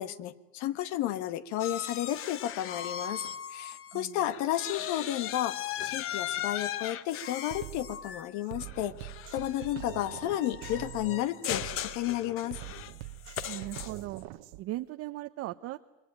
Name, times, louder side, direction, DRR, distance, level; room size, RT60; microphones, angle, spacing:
voice 1, 0.0-3.2 3.5-12.6, left 12 dB, 60° left, 13 dB, 1.5 m, -32 dB
sound 1, 1.6-4.0 4.3-14.2, left 10 dB, 40° left, 1.1 m, -38 dB
Drum kit, 6.8-6.9 7.4-14.6, right 16 dB, 75° right, 1.3 m, -44 dB
voice 2, 13.5-14.2 14.6-15.8, right 16 dB, 50° right, 8 dB, 0.8 m, -38 dB
27.5 x 22.5 x 9.0 m, 1.0 s
supercardioid pair, 130°, 32 cm